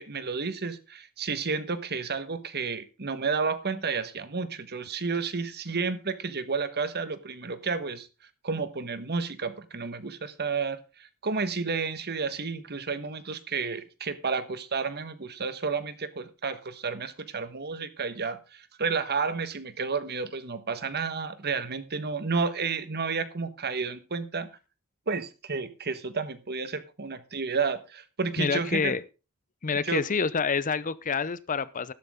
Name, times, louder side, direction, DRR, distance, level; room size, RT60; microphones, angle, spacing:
voice 1, 0.0-8.1 8.4-24.5 25.1-28.9 29.8-30.0, right 4 dB, 45° right, 1.3 m, -31 dB
voice 2, 28.4-29.0 29.6-31.9, left 5 dB, 35° left, 0.7 m, -27 dB
12.5 x 11.5 x 3.6 m
head